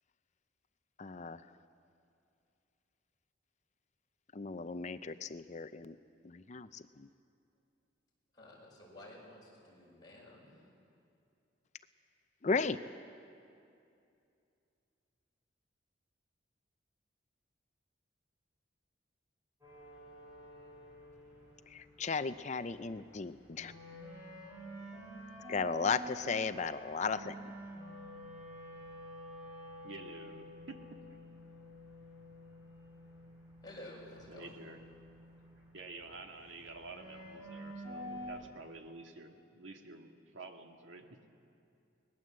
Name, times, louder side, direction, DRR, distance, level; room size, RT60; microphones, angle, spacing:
voice 1, 1.0-1.4 4.3-6.0 6.2-7.1 12.4-12.8 21.7-23.7 25.5-27.3, left 4 dB, 40° left, 12 dB, 0.5 m, -35 dB
voice 2, 8.3-10.6 33.6-34.5, left 1 dB, 20° left, -4 dB, 5.7 m, -52 dB
sound 1, 19.6-38.5, equal, 10° right, 7.8 m, -49 dB
voice 3, 29.8-31.0 34.3-34.8 35.7-41.3, right 3 dB, 85° right, 4 dB, 1.8 m, -50 dB
21.5 x 20.0 x 7.6 m, 2.5 s
head